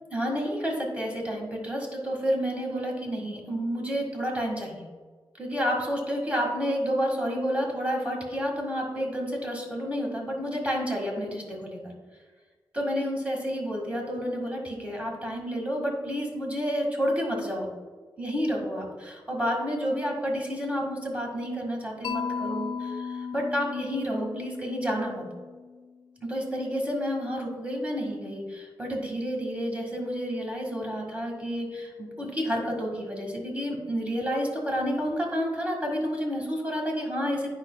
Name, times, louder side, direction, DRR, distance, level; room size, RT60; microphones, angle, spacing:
voice 1, 0.1-4.9 5.4-11.9 12.7-17.7 18.2-22.9 23.3-25.2 26.2-37.5, equal, 15° right, -1 dB, 1.9 m, -30 dB
Mallet percussion, 22.0-26.1, left 6 dB, 75° left, 0.6 m, -35 dB
9.6 x 5.3 x 2.3 m, 1.4 s
cardioid pair, 80°, 9 cm